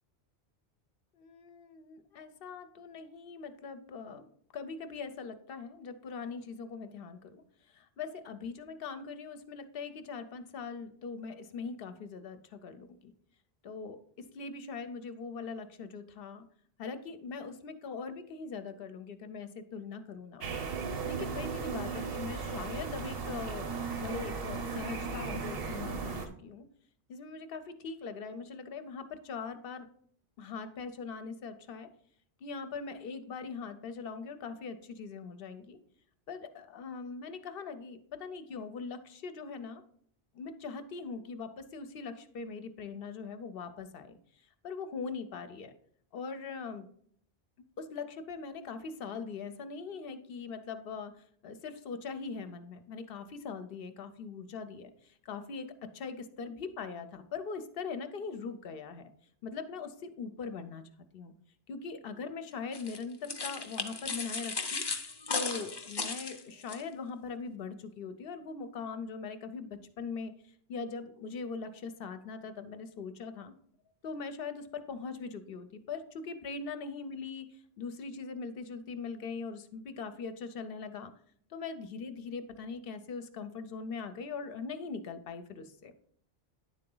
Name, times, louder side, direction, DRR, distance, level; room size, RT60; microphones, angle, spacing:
voice 1, 1.1-13.1 13.6-14.0 14.3-16.4 16.8-20.4 21.0-23.7 24.0-26.6 27.1-29.9 30.4-31.9 32.4-35.8 36.3-39.8 40.3-45.7 46.1-46.9 47.8-59.1 59.4-61.3 61.7-64.8 65.3-73.5 74.0-81.1 81.5-85.9, left 5 dB, 65° left, 10 dB, 0.7 m, -41 dB
sound 1, 20.4-26.3, right 5 dB, 65° right, 1.0 m, -36 dB
sound 2, 62.7-66.8, left 4 dB, 35° left, 0.4 m, -36 dB
9.6 x 3.8 x 3.7 m, 0.63 s
omnidirectional pair, 1.1 m